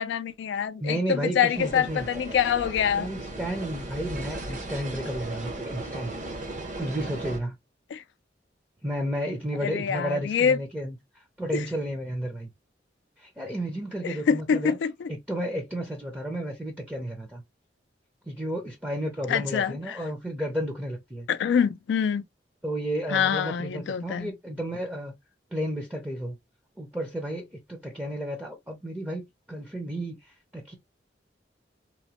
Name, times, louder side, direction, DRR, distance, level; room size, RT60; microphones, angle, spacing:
voice 1, 0.0-3.1 7.9-8.0 9.6-10.6 11.5-11.6 14.0-15.1 19.3-20.0 21.3-22.2 23.1-24.3, left 7 dB, 85° left, 0.3 m, -25 dB
voice 2, 0.8-2.1 2.9-6.2 6.8-7.6 8.8-12.5 13.2-14.8 15.1-17.4 18.3-21.3 22.6-25.1 25.5-26.4 26.8-30.8, equal, 10° right, 0.5 m, -32 dB
sound 1, 1.5-7.4, right 2 dB, 45° right, 0.8 m, -36 dB
3.0 x 2.1 x 2.8 m
head